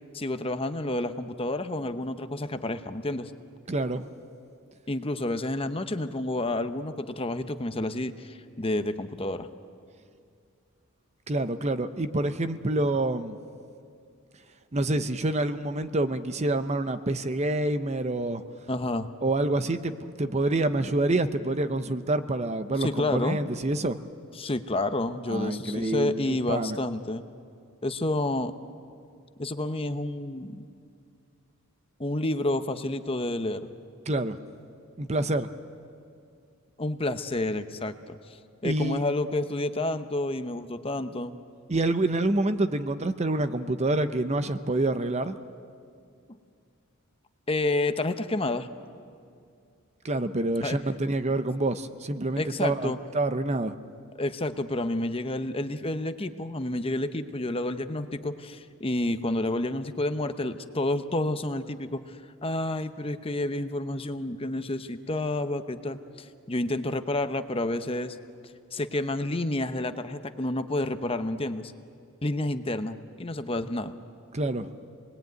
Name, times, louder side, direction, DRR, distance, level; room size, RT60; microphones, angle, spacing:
voice 1, 0.1-3.3 4.9-9.5 18.7-19.1 22.8-23.4 24.4-27.2 27.8-28.5 29.4-30.7 32.0-33.7 36.8-38.2 38.6-41.4 46.3-46.4 47.5-48.7 50.6-50.8 52.4-53.0 54.2-68.2 68.7-71.7 72.2-73.9, left 2 dB, 25° left, 9 dB, 0.9 m, -30 dB
voice 2, 3.7-4.0 11.3-13.4 14.7-18.4 19.2-24.0 25.3-26.8 34.1-34.4 35.0-35.5 38.6-39.0 41.7-45.4 50.0-53.7 74.3-74.7, right 2 dB, 30° right, 10 dB, 0.7 m, -27 dB
27.5 x 20.5 x 9.3 m, 2.3 s
head